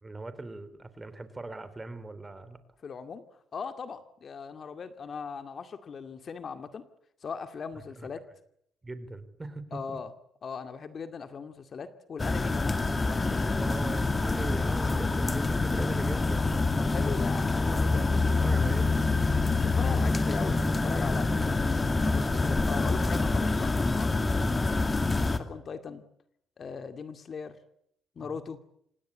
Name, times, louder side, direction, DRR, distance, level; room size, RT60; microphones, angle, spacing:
voice 1, 0.0-2.6 8.0-8.1 8.8-10.0 13.5-16.6 18.4-18.9 24.3-24.5 28.2-28.4, right 2 dB, 20° right, 13 dB, 3.6 m, -40 dB
voice 2, 2.8-3.2 3.5-6.8 7.2-8.3 9.7-10.1 10.4-12.8 13.0-13.7 16.8-18.8 19.4-24.1 25.4-26.0 26.6-27.6 28.2-28.6, left 5 dB, 50° left, 9 dB, 2.2 m, -39 dB
sound 1, 12.2-25.4, left 3 dB, 25° left, 2.4 m, -26 dB
26.5 x 20.0 x 8.7 m, 0.73 s
cardioid pair, 90°, 0 cm